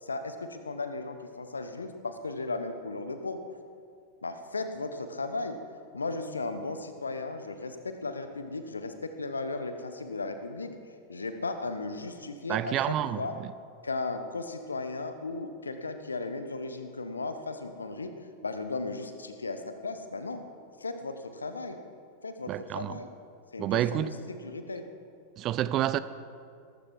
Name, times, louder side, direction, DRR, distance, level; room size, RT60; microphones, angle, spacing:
voice 1, 0.0-3.4 4.2-5.6 5.9-10.7 11.1-13.4 13.8-18.1 18.4-20.4 20.8-21.8 22.2-23.1 23.5-24.8, left 3 dB, 75° left, 1.2 m, -36 dB
voice 2, 12.5-13.5 22.5-23.0 23.6-24.1 25.4-26.0, right 12 dB, 35° right, 0.6 m, -29 dB
18.0 x 14.5 x 4.8 m
figure-of-eight pair, 90°, 0 cm